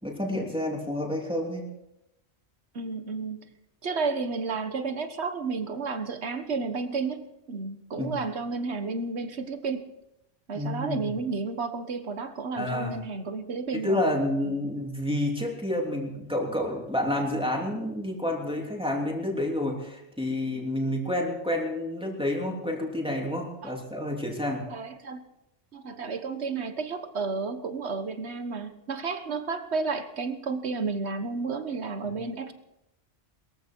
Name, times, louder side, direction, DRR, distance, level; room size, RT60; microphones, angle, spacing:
voice 1, 0.0-1.6 8.0-8.1 10.5-11.0 12.6-13.0 13.8-24.7, left 1 dB, 5° right, -1 dB, 3.1 m, -29 dB
voice 2, 2.7-3.5 3.8-9.9 10.5-14.0 14.4-14.6 23.6-23.8 24.7-25.2 25.7-32.5, right 4 dB, 70° right, 8 dB, 1.7 m, -32 dB
21.5 x 14.5 x 4.6 m, 0.89 s
omnidirectional pair, 1.2 m